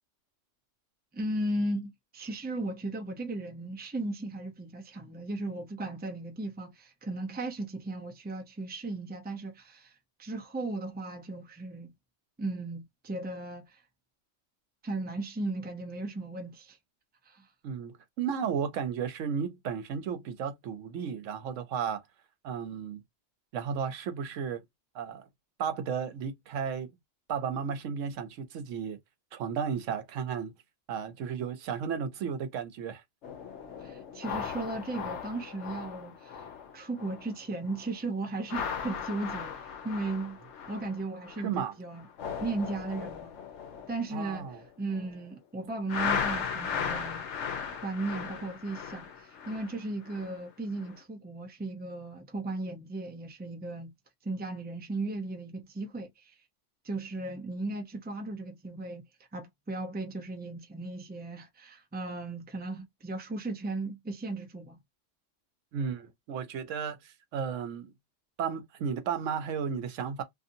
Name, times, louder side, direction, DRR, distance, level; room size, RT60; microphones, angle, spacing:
voice 1, 1.1-9.9 10.2-11.9 12.4-13.8 14.8-16.8 17.3-17.5 33.8-36.4 36.7-39.5 39.8-40.4 40.7-42.0 42.4-43.3 43.9-44.5 44.8-47.3 47.8-53.9 54.2-56.4 56.8-59.0 59.3-64.8, right 2 dB, 10° right, 0.4 m, -36 dB
voice 2, 17.6-22.0 22.4-23.0 23.5-24.6 24.9-25.3 25.6-26.9 27.3-29.0 29.3-30.5 30.9-33.0 41.4-41.7 44.1-44.6 65.7-67.9 68.4-70.2, right 7 dB, 90° right, 1.0 m, -34 dB
sound 1, 33.2-37.4 37.7-38.0 38.4-41.6 41.9-45.2 45.9-50.4 50.8-51.0, left 7 dB, 70° left, 1.0 m, -37 dB
2.7 x 2.6 x 2.6 m
omnidirectional pair, 1.3 m